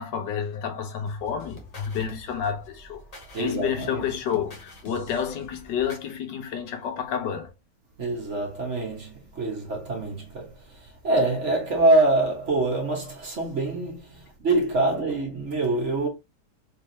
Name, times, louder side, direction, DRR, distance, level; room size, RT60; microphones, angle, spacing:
voice 1, 0.0-3.0 3.4-7.5, left 8 dB, 90° left, 1.6 m, -30 dB
sound 1, 1.1-6.1, left 2 dB, 25° left, 1.0 m, -47 dB
voice 2, 3.3-4.0 8.0-16.1, right 2 dB, 45° right, 1.6 m, -25 dB
4.3 x 3.4 x 2.8 m
omnidirectional pair, 1.9 m